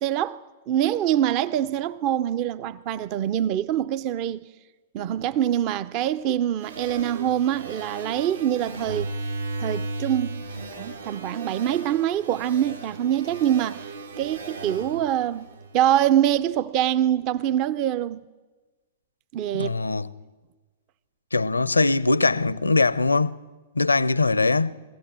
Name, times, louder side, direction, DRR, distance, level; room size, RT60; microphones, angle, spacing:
voice 1, 0.0-4.4 4.9-9.1 9.6-10.4 10.8-13.9 14.2-15.5 15.7-18.2 19.3-19.8, right 11 dB, 40° right, 0.5 m, -24 dB
sound 1, 6.6-16.1, right 3 dB, 75° right, 1.8 m, -36 dB
voice 2, 19.5-20.1 21.3-23.4 23.7-24.7, left 3 dB, 90° left, 0.6 m, -21 dB
22.5 x 16.0 x 7.6 m
figure-of-eight pair, 105°, 0 cm